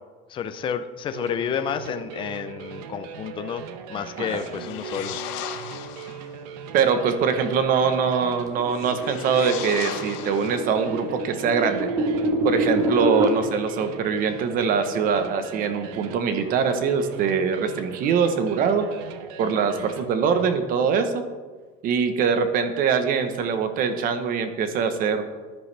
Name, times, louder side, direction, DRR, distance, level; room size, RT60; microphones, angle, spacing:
voice 1, 0.3-3.6 3.9-5.2, left 8 dB, 25° left, 9 dB, 0.5 m, -30 dB
sound 1, 1.1-20.6, right 6 dB, 90° right, 1.0 m, -38 dB
sound 2, 4.3-6.3 8.7-11.0, left 11 dB, 65° left, 0.9 m, -37 dB
voice 2, 6.7-11.9 12.4-18.9 19.4-21.2 21.8-25.2, right 6 dB, 45° right, 9 dB, 1.1 m, -23 dB
sound 3, 8.6-13.3, right 1 dB, 15° right, 1.1 m, -26 dB
14.5 x 10.5 x 3.4 m, 1.5 s
cardioid pair, 160°, 20 cm